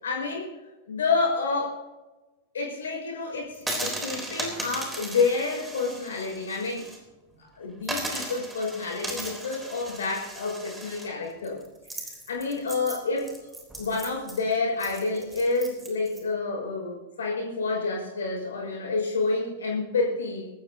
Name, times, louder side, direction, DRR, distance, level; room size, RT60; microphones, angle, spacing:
voice 1, 0.0-0.5 0.9-1.8 2.5-6.9 7.6-11.6 11.9-20.5, left 3 dB, 65° left, -1 dB, 6.1 m, -29 dB
sound 1, 3.5-7.0 7.3-7.4 7.8-16.2, right 1 dB, 10° right, 3.7 m, -37 dB
24.5 x 13.0 x 2.9 m, 1.1 s
figure-of-eight pair, 90°, 0 cm